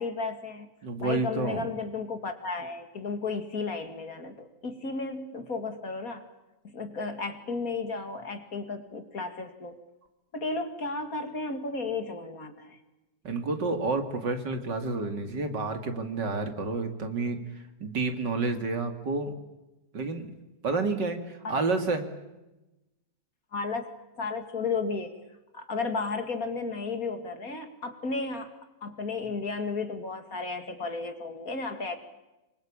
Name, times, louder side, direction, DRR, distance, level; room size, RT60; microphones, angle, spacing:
voice 1, 0.0-0.7 1.0-6.3 6.6-9.8 10.3-12.8 21.4-21.7 23.5-23.9 24.2-25.1 25.5-28.5 28.8-32.0, left 4 dB, 50° left, 8 dB, 2.8 m, -33 dB
voice 2, 0.8-1.6 13.2-17.4 17.8-19.3 19.9-20.3 20.6-22.1, right 3 dB, 70° right, 7 dB, 3.2 m, -29 dB
25.5 x 24.0 x 8.9 m, 1.0 s
omnidirectional pair, 2.0 m